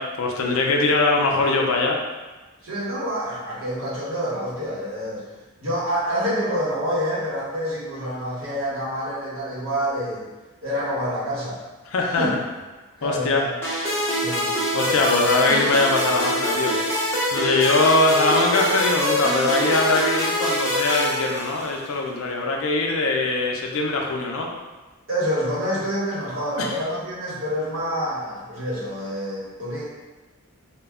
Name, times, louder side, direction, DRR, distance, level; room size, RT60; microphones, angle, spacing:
voice 1, 0.0-2.0 11.9-12.3 13.0-13.5 14.7-16.8 17.3-24.5 26.6-26.7, left 2 dB, 70° left, 0 dB, 0.4 m, -22 dB
voice 2, 2.6-5.2 5.6-10.2 10.6-11.6 12.0-12.3 13.0-13.5 14.2-14.5 25.1-29.8, equal, 60° right, -8 dB, 1.0 m, -27 dB
sound 1, 13.6-21.9, equal, 10° left, 0.6 m, -24 dB
2.2 x 2.0 x 3.5 m, 1.2 s
head